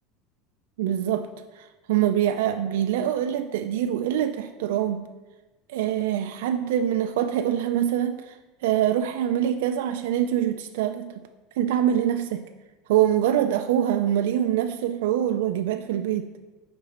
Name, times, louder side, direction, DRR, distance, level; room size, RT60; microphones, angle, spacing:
voice 1, 0.8-1.3 1.6-5.1 5.7-8.4 8.6-11.2 11.6-12.5 12.9-16.3, right 10 dB, 85° right, 7 dB, 0.3 m, -24 dB
6.6 x 4.3 x 4.3 m, 1.1 s
cardioid pair, 170°, 0 cm